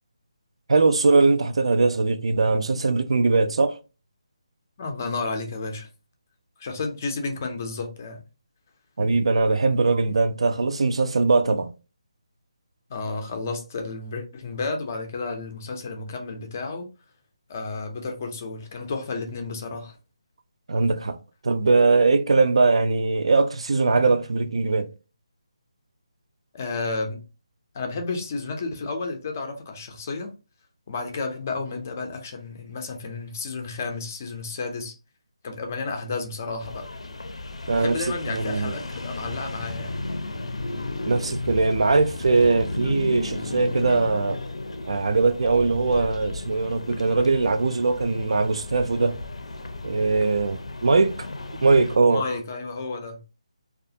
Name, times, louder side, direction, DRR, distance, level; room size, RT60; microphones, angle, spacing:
voice 1, 0.7-3.8 9.0-11.7 20.7-21.2 21.4-24.9 37.7-38.0 38.3-38.7 41.1-44.4 44.9-49.2 49.8-51.3 51.6-52.2, right 3 dB, 65° right, 0.4 m, -21 dB
voice 2, 4.8-5.9 6.6-8.2 12.9-16.9 17.5-20.0 26.5-27.2 27.7-30.3 30.9-35.0 35.4-36.9 37.7-40.0 52.1-53.2, left 3 dB, 25° left, 0.4 m, -32 dB
sound 1, 36.6-52.0, left 2 dB, 85° left, 0.5 m, -34 dB
2.4 x 2.3 x 2.7 m
hypercardioid pair, 170°, 3 cm